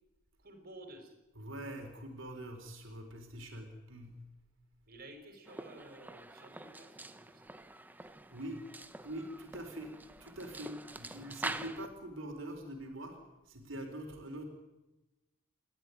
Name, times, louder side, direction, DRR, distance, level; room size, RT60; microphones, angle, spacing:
voice 1, 0.4-1.2 4.9-7.6, right 1 dB, 50° right, 5 dB, 5.3 m, -53 dB
voice 2, 1.4-4.2 8.0-8.6 9.0-14.4, right 1 dB, 70° right, 3 dB, 4.0 m, -44 dB
sound 1, 5.5-11.9, right 2 dB, 10° right, 0.9 m, -45 dB
29.5 x 12.5 x 9.8 m, 1.0 s
head